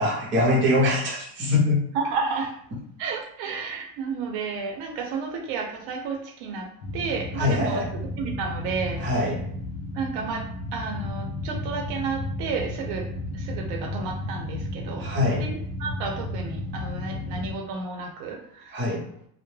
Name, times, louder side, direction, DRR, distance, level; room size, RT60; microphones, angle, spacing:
voice 1, 0.0-1.8 7.4-7.9 9.0-9.4 15.0-15.4 17.4-17.5 18.7-19.0, left 2 dB, 30° right, -5 dB, 0.7 m, -23 dB
voice 2, 1.9-2.5 3.0-6.7 6.9-7.8 8.2-9.0 9.9-10.4 10.7-13.1 13.3-15.1 15.4-18.8, right 4 dB, 80° right, 2 dB, 0.6 m, -31 dB
sound 1, 6.8-17.5, left 1 dB, 80° left, 0.6 m, -33 dB
2.2 x 2.0 x 3.1 m, 0.70 s
cardioid pair, 170°, 39 cm